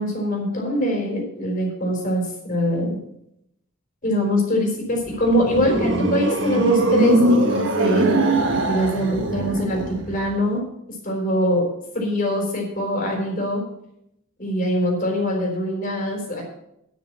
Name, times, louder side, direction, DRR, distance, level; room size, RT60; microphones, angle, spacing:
voice 1, 0.0-3.0 4.0-8.2 8.5-10.6 11.0-11.6 11.9-13.6 14.4-16.4, equal, 40° left, 0 dB, 3.9 m, -23 dB
sound 1, 4.9-10.3, right 2 dB, 65° right, 1.4 m, -21 dB
10.5 x 6.9 x 7.5 m, 0.80 s
head